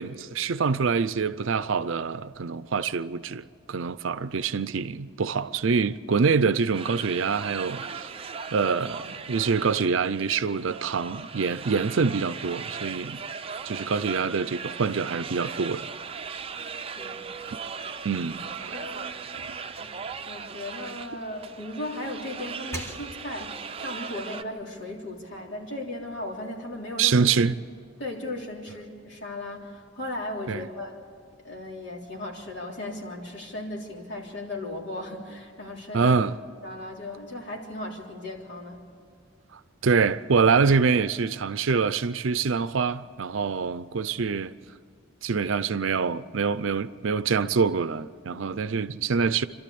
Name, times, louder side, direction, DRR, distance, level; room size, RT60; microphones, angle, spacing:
voice 1, 0.0-8.1 8.5-13.2 13.6-15.8 18.0-19.0 19.5-19.6 27.0-27.5 30.5-30.7 35.9-36.3 39.8-44.5 45.2-49.4, right 5 dB, 75° right, 0.5 m, -25 dB
sound 1, 6.7-24.4, right 6 dB, 30° right, 0.6 m, -38 dB
voice 2, 17.0-17.3 18.7-19.2 19.8-19.9 20.3-27.3 28.0-31.1 31.4-36.2 36.6-38.8 48.3-48.5, left 1 dB, 60° left, 3.4 m, -36 dB
sound 2, 19.4-21.4 21.8-23.6, right 1 dB, 15° left, 1.5 m, -45 dB
27.5 x 12.5 x 8.5 m
head